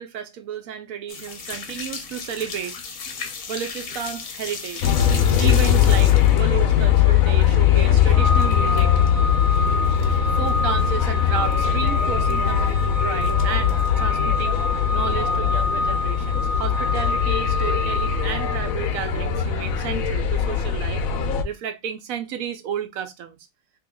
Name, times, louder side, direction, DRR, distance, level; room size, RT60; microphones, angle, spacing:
voice 1, 0.0-2.8 3.5-4.9 5.4-9.0 10.2-23.4, right 8 dB, 90° right, 1.0 m, -32 dB
sound 1, 1.1-9.1 9.4-10.2 10.5-10.6 11.0-11.1 11.3-11.5 12.3-12.8 13.2-13.9, left 5 dB, 50° left, 0.8 m, -36 dB
sound 2, 4.8-21.4, left 9 dB, 85° left, 1.1 m, -20 dB
Organ, 8.1-18.9, left 2 dB, 50° right, 0.3 m, -27 dB
3.0 x 2.9 x 3.6 m
omnidirectional pair, 1.4 m